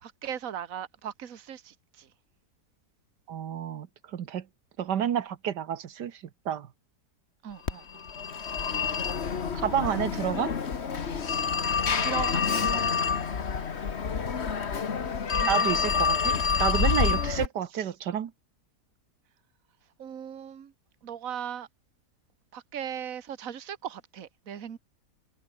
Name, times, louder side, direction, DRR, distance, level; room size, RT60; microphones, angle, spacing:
voice 1, 0.0-2.1 7.4-7.8 12.0-13.1 15.3-15.7 16.2-16.4 20.0-20.7 21.0-21.7 22.5-24.8, right 9 dB, 55° right, 1.7 m, -38 dB
voice 2, 3.3-4.5 4.8-6.7 9.5-10.5 15.5-18.3, right 9 dB, 85° right, 1.8 m, -30 dB
Telephone, 7.7-17.5, left 6 dB, 40° left, 1.6 m, -27 dB
omnidirectional pair, 1.8 m